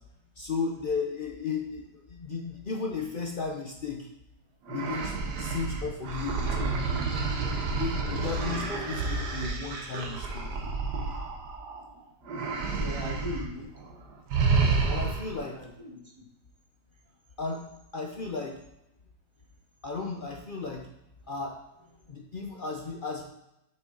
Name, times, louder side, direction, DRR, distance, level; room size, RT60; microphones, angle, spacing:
voice 1, 0.4-4.1 4.7-7.2 7.8-10.5 14.9-15.7 17.4-18.6 19.8-20.9 21.3-21.6 22.1-23.2, left 4 dB, 75° left, 2 dB, 0.4 m, -34 dB
sound 1, 4.7-11.8 12.3-13.5 13.8-13.9 14.3-15.4, right 4 dB, 70° right, 1.6 m, -30 dB
voice 2, 8.3-8.7 12.7-13.7 15.5-16.2 22.0-22.1, left 2 dB, 15° right, -2 dB, 1.3 m, -39 dB
7.4 x 5.6 x 4.0 m, 0.87 s
omnidirectional pair, 1.9 m